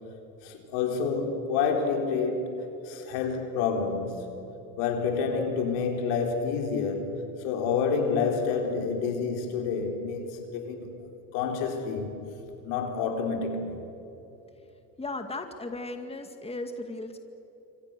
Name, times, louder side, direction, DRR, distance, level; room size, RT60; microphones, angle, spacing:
voice 1, 0.4-4.5 4.8-7.2 7.4-10.9 11.3-12.2 12.6-13.8, left 5 dB, 75° left, 3 dB, 4.4 m, -28 dB
voice 2, 15.0-17.2, left 2 dB, 15° left, 6 dB, 2.1 m, -36 dB
27.5 x 25.0 x 6.8 m, 3.0 s
supercardioid pair, 85°, 42 cm